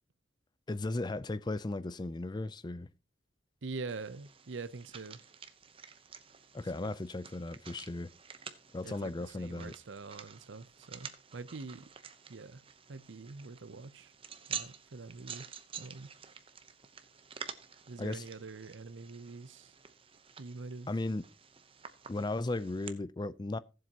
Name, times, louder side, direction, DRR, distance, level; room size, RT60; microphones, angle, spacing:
voice 1, 0.7-2.9 6.5-8.1 8.7-9.7 18.0-18.2 20.9-21.2 22.1-23.6, left 2 dB, 20° left, 0.4 m, -36 dB
voice 2, 3.6-5.2 6.8-7.0 8.8-11.9 12.3-12.6 12.9-14.1 14.5-15.5 15.8-16.1 17.9-19.7 20.4-20.9, right 4 dB, 75° right, 0.7 m, -45 dB
sound 1, 3.9-22.9, right 7 dB, 30° right, 0.8 m, -49 dB
17.0 x 7.7 x 2.9 m
head